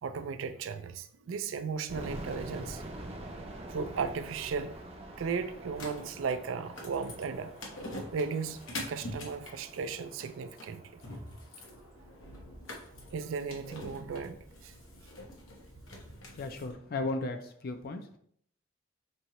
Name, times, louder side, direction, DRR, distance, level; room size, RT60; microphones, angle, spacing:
voice 1, 0.0-2.8 3.7-4.8 5.2-7.5 8.1-10.8 13.1-14.7, right 5 dB, 80° right, 11 dB, 0.4 m, -36 dB
sound 1, 1.9-12.8, right 1 dB, 30° right, 0.5 m, -46 dB
sound 2, 5.7-16.7, left 1 dB, 90° left, 1.0 m, -45 dB
voice 2, 16.3-18.1, left 2 dB, 50° left, 6 dB, 0.4 m, -35 dB
5.3 x 2.8 x 2.9 m, 0.66 s
head